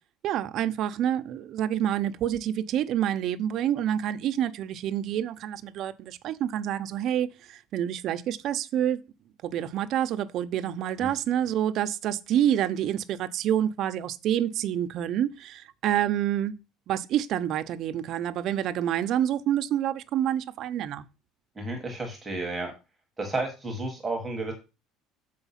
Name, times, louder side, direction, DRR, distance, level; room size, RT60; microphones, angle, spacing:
voice 1, 0.2-9.0 9.4-16.5 16.9-21.0, right 10 dB, 40° right, 0.5 m, -27 dB
voice 2, 21.6-22.7 23.2-24.5, right 2 dB, 10° right, 1.0 m, -32 dB
7.0 x 4.4 x 5.6 m
cardioid pair, 175°, 0 cm